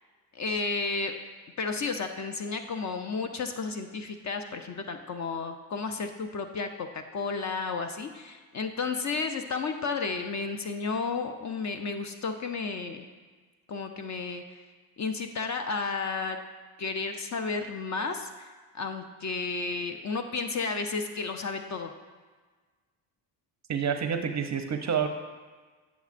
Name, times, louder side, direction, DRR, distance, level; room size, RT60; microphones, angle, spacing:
voice 1, 0.3-1.1 1.6-13.1 13.7-14.4 15.0-16.4 16.8-18.5 18.7-21.9, left 4 dB, 35° left, 6 dB, 0.6 m, -32 dB
voice 2, 23.7-25.1, right 7 dB, 35° right, 6 dB, 0.6 m, -28 dB
9.3 x 7.1 x 2.5 m, 1.4 s
cardioid pair, 100°, 49 cm